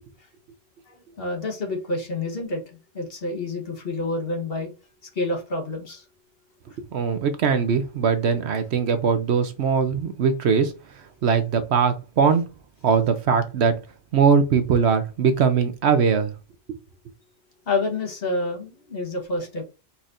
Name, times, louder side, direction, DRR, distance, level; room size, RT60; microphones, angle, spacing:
voice 1, 0.9-4.7 5.1-6.0 17.7-19.6, left 2 dB, 50° left, 1.3 m, -28 dB
voice 2, 6.9-12.4 12.8-13.8 14.1-16.3, right 6 dB, 65° right, 0.9 m, -21 dB
4.5 x 4.1 x 2.5 m
omnidirectional pair, 1.3 m